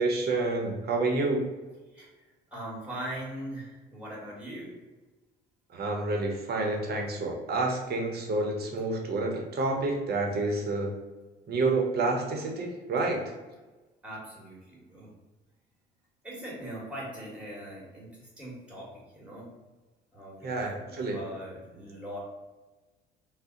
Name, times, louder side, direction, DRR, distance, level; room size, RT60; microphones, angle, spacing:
voice 1, 0.0-1.4 5.7-10.9 11.5-13.3 20.4-21.2, right 3 dB, 50° right, 1 dB, 0.8 m, -29 dB
voice 2, 1.9-2.2 2.5-4.7 14.0-15.1 16.2-19.5 20.1-22.2, right 1 dB, 5° right, -4 dB, 1.4 m, -41 dB
2.6 x 2.1 x 3.7 m, 1.2 s
cardioid pair, 90°, 20 cm